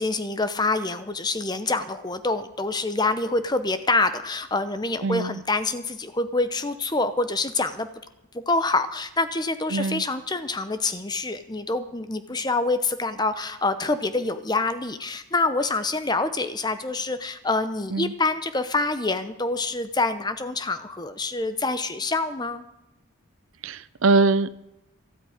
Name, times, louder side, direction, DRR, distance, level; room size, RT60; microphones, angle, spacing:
voice 1, 0.0-7.9 8.3-22.6, left 3 dB, 20° left, 0.8 m, -26 dB
voice 2, 5.0-5.4 9.7-10.0 17.9-18.1 23.6-24.7, right 3 dB, 70° right, 0.5 m, -23 dB
13.0 x 8.6 x 9.3 m
head